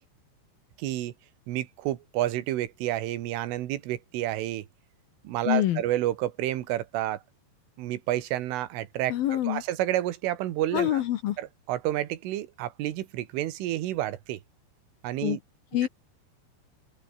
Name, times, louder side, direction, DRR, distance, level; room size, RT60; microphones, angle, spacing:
voice 1, 0.8-1.1 1.5-4.7 5.3-7.2 7.8-11.0 11.4-14.4 15.0-15.4 15.8-15.9, right 14 dB, 90° right, 4.1 m, -30 dB
voice 2, 5.5-5.8 9.1-9.6 10.7-11.4 15.2-15.4 15.7-15.9, left 12 dB, 70° left, 2.4 m, -25 dB
open air
omnidirectional pair, 5.6 m